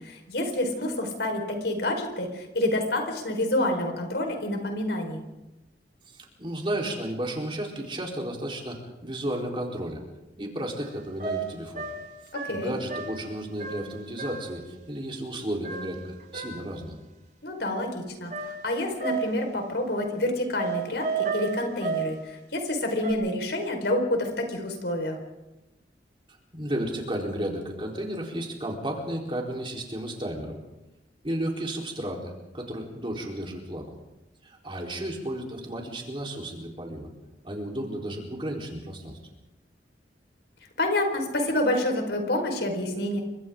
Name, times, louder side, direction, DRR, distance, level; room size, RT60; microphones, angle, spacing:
voice 1, 0.0-5.2 12.3-12.7 17.4-25.2 40.8-43.2, left 1 dB, 75° left, 3 dB, 4.9 m, -28 dB
voice 2, 6.1-10.0 10.4-11.9 12.5-17.0 26.5-30.6 31.2-33.9 34.4-37.1 37.4-39.2, right 1 dB, 30° right, 0 dB, 4.1 m, -33 dB
sound 1, 10.8-10.9 11.2-13.3 13.6-13.9 14.2-14.6 15.6-16.7 18.3-19.5 20.6-22.2 23.0-23.1, right 5 dB, 45° right, 5.2 m, -33 dB
29.5 x 25.0 x 3.9 m, 0.98 s
head